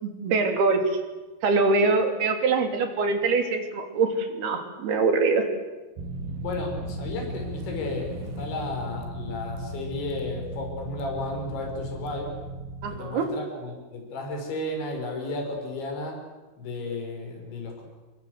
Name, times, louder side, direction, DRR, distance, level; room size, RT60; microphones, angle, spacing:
voice 1, 0.0-0.9 1.4-5.5 12.8-13.3, right 4 dB, 60° right, 6 dB, 4.9 m, -24 dB
sound 1, 6.0-13.0, right 1 dB, 75° right, 4.6 m, -36 dB
voice 2, 6.4-12.3 12.9-16.2 16.6-17.8, left 2 dB, 80° left, 2 dB, 7.8 m, -33 dB
30.0 x 23.5 x 8.2 m, 1.2 s
omnidirectional pair, 5.2 m